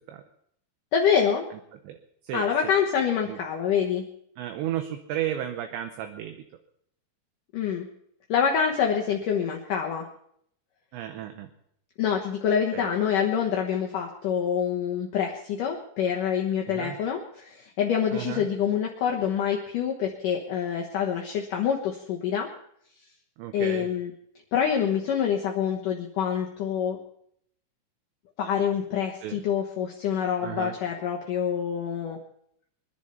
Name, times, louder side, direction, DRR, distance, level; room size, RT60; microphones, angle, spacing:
voice 1, 0.9-1.4 2.3-4.0 7.5-7.9 8.3-10.1 12.0-22.5 23.5-24.1 24.5-27.0 28.4-32.2, left 8 dB, 80° left, 0 dB, 1.8 m, -26 dB
voice 2, 2.2-2.7 3.3-3.4 4.4-6.4 10.9-11.5 12.7-12.9 16.7-17.0 18.1-18.5 23.4-23.9 29.2-29.4 30.4-30.8, right 11 dB, 75° right, 7 dB, 2.9 m, -33 dB
23.0 x 10.5 x 5.6 m, 0.69 s
omnidirectional pair, 5.7 m